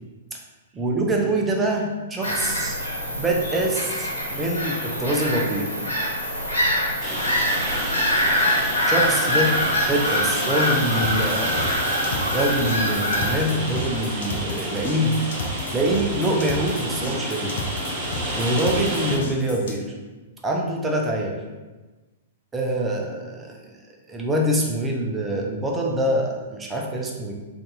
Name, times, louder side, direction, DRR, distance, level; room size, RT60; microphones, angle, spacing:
voice 1, 0.7-5.7 8.9-9.6 9.9-11.8 12.3-15.2 15.7-17.6 18.3-19.9 20.4-21.4 22.5-23.7 24.1-27.3, right 1 dB, 15° right, -1 dB, 0.6 m, -25 dB
Bird vocalization bird call bird song / Gull seagull, 2.2-13.3, equal, 80° left, 0.8 m, -24 dB
Rain, 7.0-19.2, right 1 dB, 30° right, 0.9 m, -30 dB
sound 1, 11.0-19.8, left 3 dB, 60° left, 0.5 m, -33 dB
2.6 x 2.6 x 3.8 m, 1.2 s
figure-of-eight pair, 105°, 0 cm